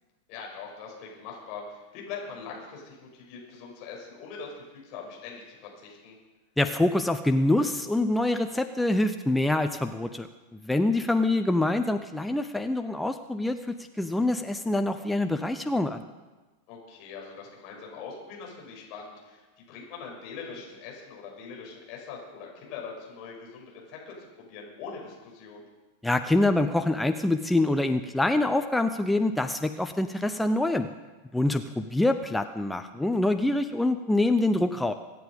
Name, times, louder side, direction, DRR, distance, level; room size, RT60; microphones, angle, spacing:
voice 1, 0.3-6.2 11.0-11.4 16.7-25.6, left 5 dB, 40° left, -1 dB, 5.9 m, -42 dB
voice 2, 6.6-10.3 10.6-16.0 26.0-30.9 31.3-34.9, left 2 dB, 5° left, 7 dB, 0.7 m, -25 dB
25.0 x 9.3 x 5.4 m, 1.2 s
figure-of-eight pair, 90°, 0 cm